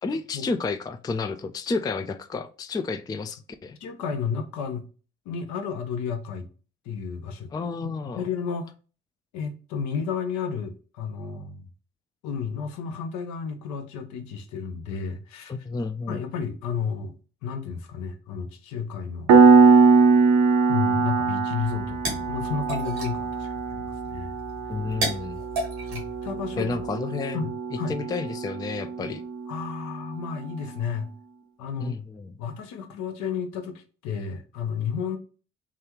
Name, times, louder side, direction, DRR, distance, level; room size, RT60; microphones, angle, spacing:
voice 1, 0.0-3.8 7.5-8.3 15.5-16.2 24.7-25.4 26.6-27.4 27.7-29.2 31.8-32.3, left 4 dB, 15° left, 0.3 m, -31 dB
voice 2, 3.8-4.8 5.3-6.5 6.9-7.5 7.8-8.7 9.3-11.6 12.2-15.5 16.1-17.1 17.4-19.3 19.6-19.8 20.7-24.3 25.9-26.8 27.3-27.9 29.5-31.1 31.6-31.9 32.4-35.2, left 6 dB, 65° left, 0.7 m, -32 dB
Piano, 19.3-29.7, right 4 dB, 65° right, 0.7 m, -22 dB
sound 1, 21.6-26.9, right 1 dB, 85° right, 1.1 m, -35 dB
3.1 x 2.3 x 2.9 m
hypercardioid pair, 40°, 31 cm